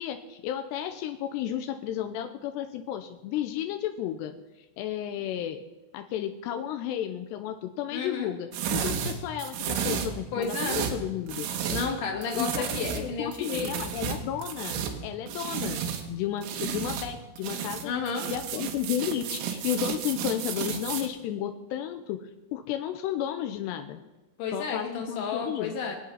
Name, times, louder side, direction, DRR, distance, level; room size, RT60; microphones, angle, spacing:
voice 1, 0.0-4.3 4.8-5.6 5.9-11.5 12.3-15.8 16.1-17.9 18.3-22.2 22.5-24.0 24.5-25.7, left 10 dB, 85° left, 6 dB, 2.4 m, -33 dB
voice 2, 7.9-8.3 10.3-10.8 11.7-13.7 17.8-18.3 24.4-25.9, left 5 dB, 50° left, 2 dB, 3.2 m, -32 dB
sound 1, 8.5-12.0 12.2-16.0 16.4-17.1 17.4-21.1, right 7 dB, 80° right, 3.9 m, -32 dB
24.5 x 8.5 x 5.7 m, 1.1 s
omnidirectional pair, 5.8 m